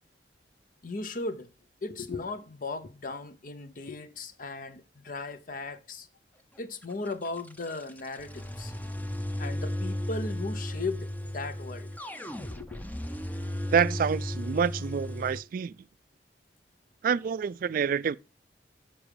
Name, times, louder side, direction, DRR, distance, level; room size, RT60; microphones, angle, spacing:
voice 1, 0.8-1.5 1.8-6.1 6.6-8.7 9.4-11.9 12.4-12.8, left 3 dB, 50° left, 0.8 m, -37 dB
sound 1, 6.8-15.4, left 1 dB, 10° left, 0.7 m, -35 dB
voice 2, 13.7-15.7 17.0-18.2, right 6 dB, 50° right, 0.3 m, -27 dB
7.1 x 6.2 x 4.8 m
head